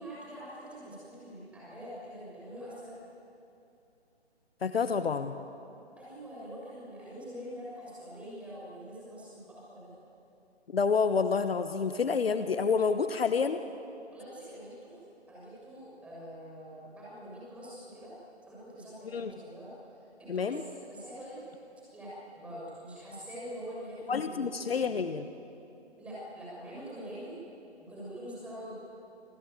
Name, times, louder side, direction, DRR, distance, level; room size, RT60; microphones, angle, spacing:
voice 1, 0.0-2.9 6.0-9.9 14.1-15.0 15.3-18.1 18.5-19.7 20.0-21.4 21.9-25.0 26.0-27.4 27.8-28.7, equal, 5° right, -7 dB, 6.6 m, -44 dB
voice 2, 4.6-5.4 10.7-13.6 19.1-19.3 20.3-20.6 24.1-25.3, left 5 dB, 60° left, 10 dB, 1.2 m, -28 dB
27.0 x 15.0 x 9.4 m, 2.8 s
hypercardioid pair, 160°, 34 cm